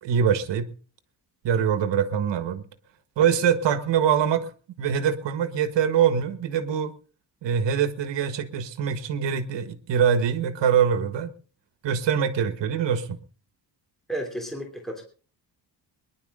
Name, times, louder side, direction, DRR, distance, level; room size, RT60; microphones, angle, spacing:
voice 1, 0.0-0.7 1.4-2.7 3.2-4.5 4.8-6.9 7.4-11.3 11.8-13.2, right 8 dB, 80° right, 1.6 m, -23 dB
voice 2, 14.1-15.0, right 1 dB, ahead, 2.9 m, -32 dB
22.5 x 11.0 x 3.7 m
cardioid pair, 145°, 42 cm